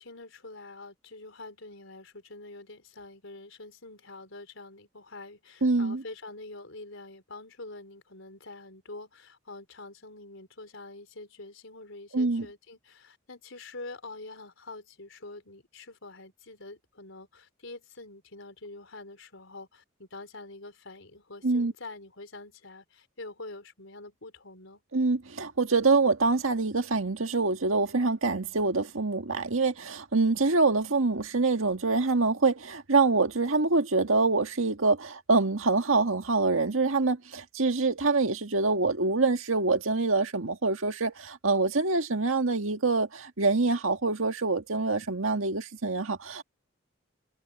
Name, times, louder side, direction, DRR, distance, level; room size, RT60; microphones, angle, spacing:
voice 1, 0.0-24.8, left 2 dB, 70° left, 4.7 m, -45 dB
voice 2, 5.6-6.0 12.1-12.5 21.4-21.7 24.9-46.4, right 3 dB, 85° right, 1.7 m, -25 dB
head